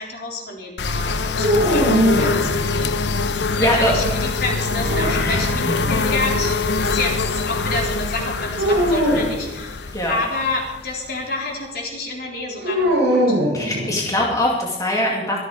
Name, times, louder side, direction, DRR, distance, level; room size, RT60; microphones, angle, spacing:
voice 1, 0.0-3.1 3.6-13.4, left 2 dB, 60° left, 0 dB, 3.8 m, -29 dB
sound 1, 0.8-11.4, left 3 dB, 75° left, 0.7 m, -24 dB
sound 2, 1.4-2.9 4.6-5.7 8.6-9.4 12.6-14.3, equal, 70° right, 6.0 m, -21 dB
voice 2, 3.6-3.9 5.2-5.4 5.6-5.9 9.9-10.2 13.5-15.4, left 1 dB, 20° left, -2 dB, 2.3 m, -22 dB
23.5 x 8.1 x 4.9 m, 0.99 s
head